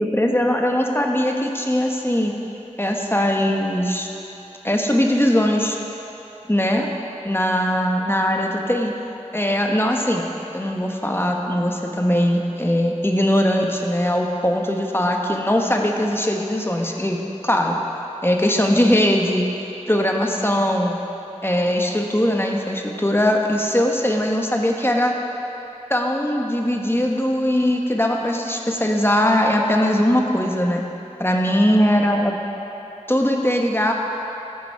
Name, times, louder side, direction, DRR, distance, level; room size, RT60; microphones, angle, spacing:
voice 1, 0.0-2.3 2.8-4.1 4.6-5.8 6.5-6.9 7.2-8.9 9.3-10.3 10.5-17.2 17.4-17.8 18.2-19.5 19.9-20.9 21.4-25.1 25.9-30.8 31.2-32.4 33.1-33.9, equal, 20° left, 1 dB, 1.1 m, -20 dB
14.5 x 7.1 x 4.6 m, 3.0 s
wide cardioid pair, 45°, 13 cm